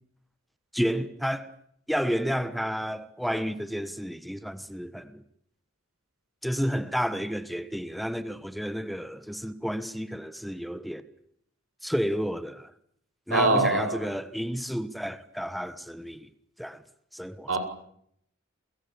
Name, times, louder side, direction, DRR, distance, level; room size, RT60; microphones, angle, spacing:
voice 1, 0.7-1.5 1.9-5.2 6.4-11.0 11.8-12.7 13.3-16.3 16.6-16.8 17.1-17.5, equal, ahead, 1.2 m, -31 dB
voice 2, 13.3-14.1 17.5-17.6, right 2 dB, 85° right, 7.2 m, -23 dB
29.0 x 25.0 x 7.1 m
head